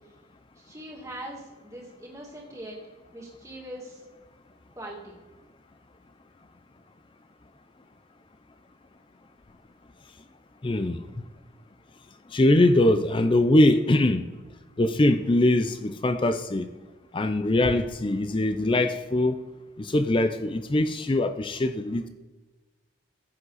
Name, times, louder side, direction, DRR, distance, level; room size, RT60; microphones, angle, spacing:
voice 1, 0.6-2.8 3.1-4.0 4.8-5.3, right 1 dB, 15° right, -2 dB, 2.4 m, -41 dB
voice 2, 10.6-11.0 12.3-14.3 14.8-16.7 17.1-19.4 19.8-22.1, left 1 dB, 25° left, 10 dB, 0.4 m, -22 dB
14.5 x 8.0 x 4.1 m, 1.2 s
head